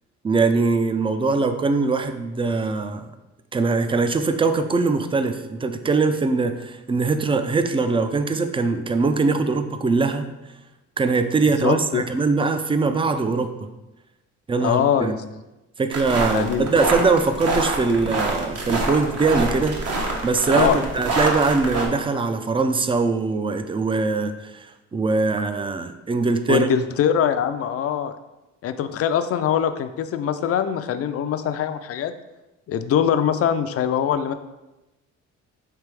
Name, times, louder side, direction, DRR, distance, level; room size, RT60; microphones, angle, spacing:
voice 1, 0.2-3.1 3.5-10.3 11.0-13.7 14.5-15.2 15.8-19.8 20.2-24.7 24.9-26.7, right 4 dB, 20° right, 9 dB, 0.3 m, -22 dB
voice 2, 11.6-12.0 14.6-15.2 16.3-16.7 20.5-20.8 26.5-28.1 28.6-32.1 32.7-34.3, left 9 dB, 50° left, 10 dB, 0.4 m, -22 dB
sound 1, 15.9-21.9, right 2 dB, 55° right, 1.0 m, -26 dB
3.4 x 3.3 x 4.7 m, 1.0 s
cardioid pair, 90°, 30 cm